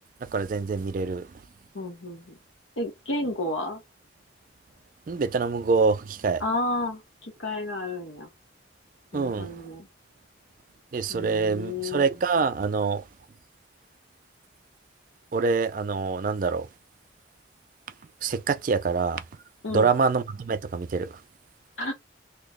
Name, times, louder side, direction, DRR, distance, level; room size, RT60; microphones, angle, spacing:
voice 1, 0.3-1.3 5.1-6.4 9.1-9.6 10.9-13.0 15.3-16.7 18.2-19.2 19.7-21.1, right 4 dB, 45° right, 0.3 m, -25 dB
voice 2, 1.7-2.4 2.8-3.8 6.4-8.3 9.1-9.9 11.1-12.0 19.6-19.9 21.8-21.9, left 2 dB, 90° left, 1.2 m, -31 dB
2.8 x 2.2 x 3.6 m
head